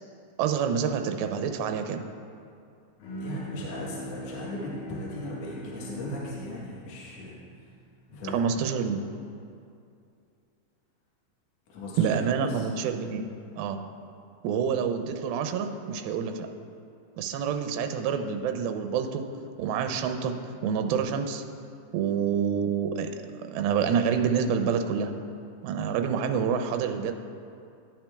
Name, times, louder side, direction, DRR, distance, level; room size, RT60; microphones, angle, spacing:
voice 1, 0.4-2.0 8.3-9.0 12.0-13.2 13.6-13.8 14.4-16.5 17.2-19.3 19.6-20.3 20.6-21.4 21.9-25.1 25.6-27.1, right 7 dB, 85° right, 6 dB, 2.4 m, -27 dB
Bowed string instrument, 3.0-8.4, equal, 80° left, 3.1 m, -42 dB
voice 2, 3.2-7.4 8.1-8.4 11.7-12.7, left 1 dB, 65° left, -5 dB, 1.7 m, -37 dB
12.5 x 8.8 x 2.3 m, 2.5 s
omnidirectional pair, 4.3 m